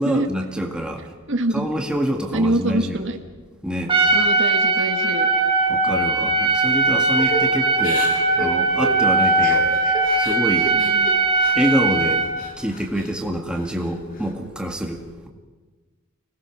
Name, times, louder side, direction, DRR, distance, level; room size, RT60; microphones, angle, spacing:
voice 1, 0.0-1.1 1.5-3.0 3.6-4.0 5.7-8.1 8.4-9.8 10.2-10.7 11.5-12.2 12.6-15.3, equal, 5° right, 2 dB, 1.9 m, -26 dB
voice 2, 1.3-1.7 2.3-3.2 4.1-5.3 5.9-6.3 10.7-11.1, right 1 dB, 60° right, 6 dB, 1.5 m, -25 dB
Trumpet, 3.9-12.3, right 3 dB, 25° right, 4.0 m, -19 dB
Crying sobbing / Breathing, 7.2-11.8 12.2-13.1 13.5-14.3, equal, 40° left, 2.4 m, -32 dB
25.0 x 19.0 x 6.2 m, 1.3 s
head